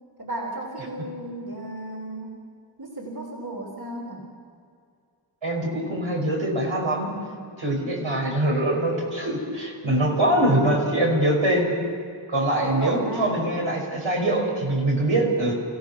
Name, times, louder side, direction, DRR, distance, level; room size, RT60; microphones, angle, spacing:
voice 1, 0.2-2.4 2.8-4.3 12.6-13.4, right 1 dB, 50° right, -1 dB, 3.8 m, -33 dB
voice 2, 5.4-7.1 7.6-11.7 12.3-15.5, right 1 dB, 85° right, -2 dB, 5.5 m, -23 dB
29.0 x 16.0 x 6.0 m, 2.3 s
wide cardioid pair, 55°, 47 cm